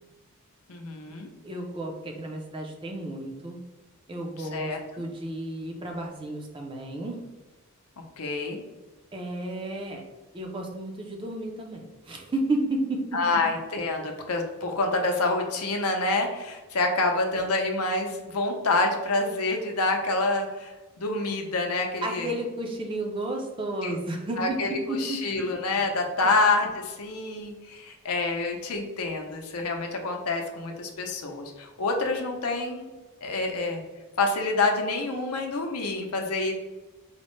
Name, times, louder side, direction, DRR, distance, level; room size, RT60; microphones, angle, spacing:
voice 1, 0.7-1.3 4.4-4.8 8.2-8.6 13.1-22.3 23.8-23.9 24.4-32.9 33.2-33.8 34.2-36.5, left 3 dB, 85° left, 3 dB, 0.6 m, -27 dB
voice 2, 1.4-3.6 4.1-7.2 9.1-10.0 10.3-13.2 22.0-25.4, right 1 dB, 25° right, 1 dB, 0.4 m, -32 dB
4.2 x 2.1 x 3.0 m, 1.2 s
head